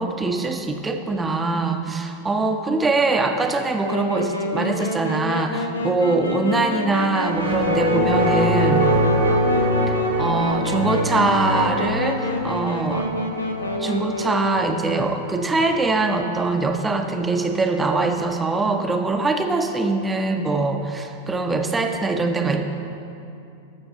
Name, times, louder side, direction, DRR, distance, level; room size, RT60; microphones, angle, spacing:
voice 1, 0.0-8.9 10.2-13.1 13.8-22.6, right 3 dB, 15° right, 5 dB, 0.7 m, -23 dB
Wind instrument woodwind instrument, 3.8-14.8, left 2 dB, 80° left, 0.8 m, -28 dB
sound 1, 7.2-15.9, equal, 75° right, 1.5 m, -24 dB
14.0 x 6.3 x 3.8 m, 2.6 s
figure-of-eight pair, 90°, 0 cm